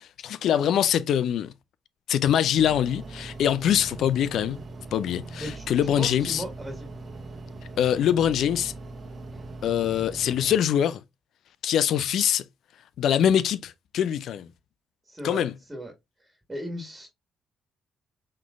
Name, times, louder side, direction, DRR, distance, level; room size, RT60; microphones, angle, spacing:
voice 1, 0.0-1.5 2.1-4.6 4.9-6.4 7.8-8.7 9.6-11.0 11.6-12.4 13.0-14.5 15.2-15.5, left 9 dB, 70° left, 0.4 m, -24 dB
sound 1, 2.6-10.6, right 2 dB, 45° right, 1.1 m, -40 dB
voice 2, 5.4-6.9 9.3-9.5 15.1-15.4 15.7-15.9 16.5-17.1, equal, 20° right, 1.7 m, -36 dB
5.7 x 3.2 x 2.4 m
hypercardioid pair, 50°, 0 cm